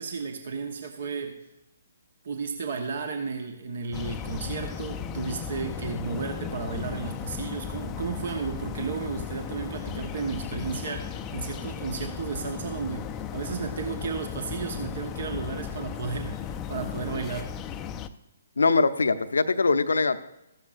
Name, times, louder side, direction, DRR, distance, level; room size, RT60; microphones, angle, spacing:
voice 1, 0.0-1.4 2.2-13.1 13.3-17.5, right 5 dB, 55° right, 5 dB, 1.2 m, -33 dB
sound 1, 3.9-18.1, left 7 dB, 20° left, 0.5 m, -36 dB
voice 2, 18.6-20.2, left 4 dB, 70° left, 11 dB, 0.7 m, -22 dB
14.5 x 12.5 x 2.5 m, 0.89 s
figure-of-eight pair, 130°, 0 cm